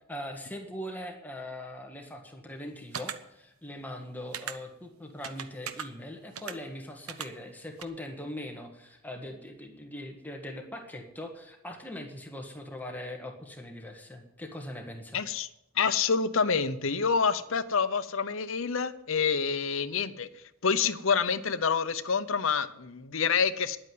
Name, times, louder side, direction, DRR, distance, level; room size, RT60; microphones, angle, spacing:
voice 1, 0.1-15.2, left 1 dB, 10° left, 2 dB, 1.5 m, -41 dB
sound 1, 2.9-3.2 4.3-4.5 5.2-5.9 6.3-6.5 7.1-7.3 7.8-7.9, right 8 dB, 80° right, 1.0 m, -37 dB
voice 2, 15.1-15.5 15.8-20.3 20.6-23.8, left 5 dB, 65° left, 11 dB, 0.8 m, -27 dB
11.0 x 8.9 x 9.6 m, 0.83 s
head